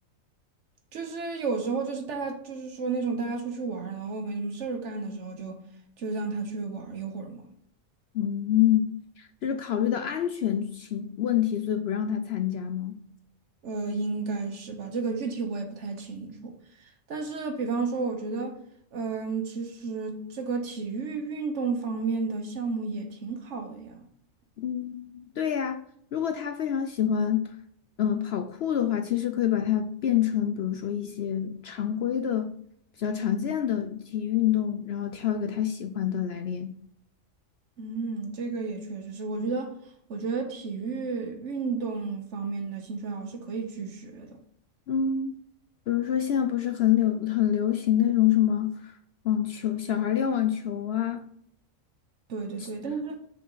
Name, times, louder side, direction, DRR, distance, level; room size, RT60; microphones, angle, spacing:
voice 1, 0.9-5.6 6.0-7.5 13.6-16.5 16.8-18.6 18.9-24.0 37.8-39.7 40.1-44.4 52.3-53.2, right 4 dB, 60° right, 1.4 m, -32 dB
voice 2, 8.1-8.9 9.2-13.0 24.6-25.8 26.1-27.5 28.0-32.5 33.0-36.7 44.9-45.4 45.9-49.0 49.2-51.3 52.6-52.7, left 10 dB, 65° left, 0.7 m, -26 dB
6.9 x 4.9 x 3.9 m
omnidirectional pair, 1.4 m